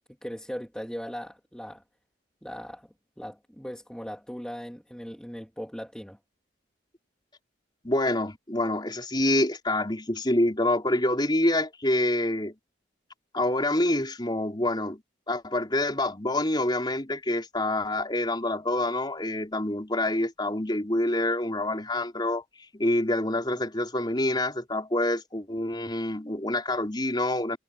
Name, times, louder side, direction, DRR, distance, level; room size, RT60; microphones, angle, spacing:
voice 1, 0.2-1.8 2.4-6.2, equal, 5° left, 2.5 m, -39 dB
voice 2, 7.8-12.5 13.3-15.0 15.3-22.4 22.7-27.6, left 1 dB, 25° left, 4.4 m, -26 dB
head